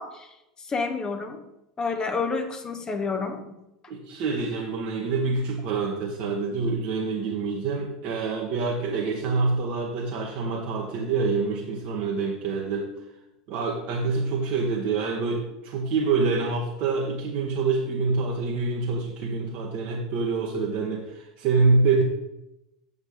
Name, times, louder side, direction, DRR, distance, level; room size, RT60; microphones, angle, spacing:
voice 1, 0.0-1.4 1.8-3.5, left 4 dB, 20° left, 6 dB, 1.3 m, -30 dB
voice 2, 3.9-12.9 13.5-22.0, right 4 dB, 45° right, -1 dB, 1.5 m, -26 dB
8.0 x 6.8 x 5.4 m, 0.91 s
figure-of-eight pair, 80°, 4 cm